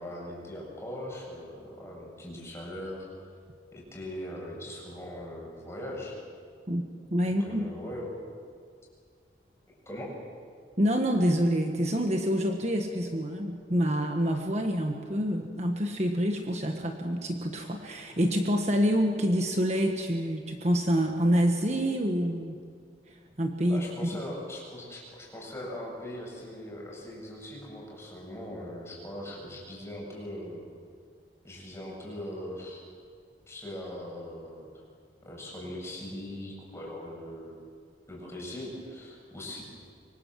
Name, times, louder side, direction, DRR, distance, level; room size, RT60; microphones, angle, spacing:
voice 1, 0.0-3.1 3.7-6.2 7.2-8.1 9.9-10.1 23.7-30.7 31.4-32.8 33.5-34.8 35.2-37.6 38.1-39.6, left 1 dB, 15° left, -3 dB, 7.3 m, -40 dB
voice 2, 6.7-7.7 10.8-22.6 23.1-24.1, equal, 40° right, 3 dB, 1.5 m, -27 dB
25.5 x 25.0 x 7.6 m, 2.1 s
head